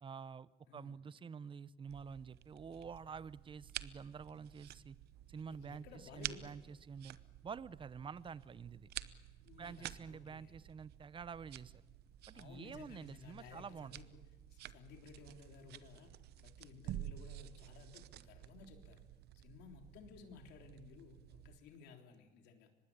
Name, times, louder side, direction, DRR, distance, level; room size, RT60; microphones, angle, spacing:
voice 1, 0.0-5.0 5.3-5.9 6.1-7.2 7.4-8.9 9.6-11.7 12.3-13.9, right 6 dB, 30° right, 19 dB, 0.7 m, -48 dB
voice 2, 0.7-1.0 5.5-6.6 9.4-10.6 12.3-14.1 14.5-16.1 16.4-19.0 19.3-22.7, left 5 dB, 85° left, 4 dB, 3.4 m, -57 dB
sound 1, 1.9-21.6, right 13 dB, 70° right, 0.9 m, -51 dB
24.5 x 20.0 x 8.7 m, 1.3 s
cardioid pair, 110°, 17 cm